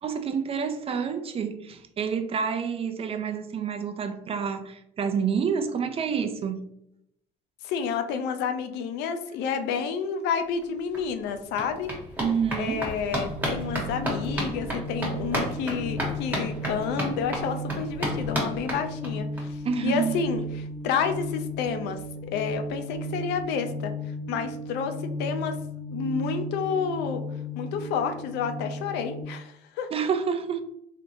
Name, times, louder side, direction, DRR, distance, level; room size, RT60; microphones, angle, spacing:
voice 1, 0.0-6.6 12.2-12.9 19.6-20.1 29.9-30.6, right 6 dB, 35° right, 8 dB, 0.4 m, -28 dB
voice 2, 7.6-11.9 12.6-23.9 24.3-25.6 25.9-27.2 27.6-29.9, left 6 dB, 85° left, 8 dB, 0.4 m, -30 dB
sound 1, 10.6-10.7 10.9-19.4 19.7-19.8 20.1-20.2 20.4-20.5, equal, 10° right, 1.2 m, -33 dB
sound 2, 13.3-29.2, equal, 60° right, 0.9 m, -35 dB
3.3 x 2.8 x 2.6 m, 0.78 s
cardioid pair, 110°, 17 cm